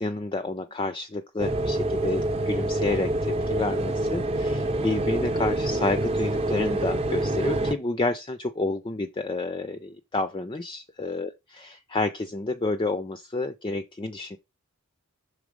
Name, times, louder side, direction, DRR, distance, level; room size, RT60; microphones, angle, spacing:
voice 1, 0.0-14.4, left 2 dB, 20° left, 0.4 m, -30 dB
sound 1, 1.4-7.7, right 1 dB, 25° right, 0.8 m, -26 dB
6.2 x 3.7 x 5.0 m
head